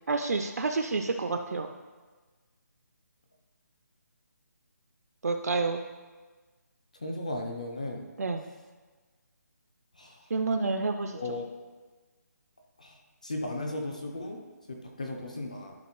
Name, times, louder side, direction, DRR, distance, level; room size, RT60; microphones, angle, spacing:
voice 1, 0.1-1.7 5.2-5.8 8.2-8.4 10.3-11.2, right 3 dB, 65° right, 6 dB, 0.4 m, -29 dB
voice 2, 7.0-8.1 10.0-10.2 11.2-11.5 12.8-14.4 14.7-15.7, left 2 dB, 25° left, 2 dB, 0.3 m, -36 dB
11.5 x 4.4 x 2.9 m, 1.3 s
hypercardioid pair, 180°, 9 cm